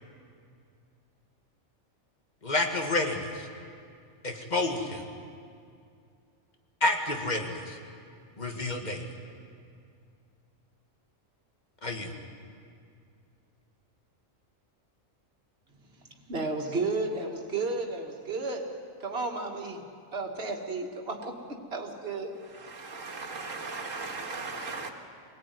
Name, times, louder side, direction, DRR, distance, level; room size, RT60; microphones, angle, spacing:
voice 1, 2.4-3.5 4.2-5.0 6.8-7.8 8.4-9.0 11.8-12.1, left 2 dB, 35° left, 3 dB, 2.2 m, -29 dB
voice 2, 16.3-18.8 19.0-19.8 20.1-21.4 21.7-22.4, right 3 dB, 50° right, 1 dB, 2.4 m, -32 dB
voice 3, 22.5-24.9, right 3 dB, 75° right, 3 dB, 2.3 m, -37 dB
25.0 x 17.5 x 9.5 m, 2.3 s
omnidirectional pair, 1.4 m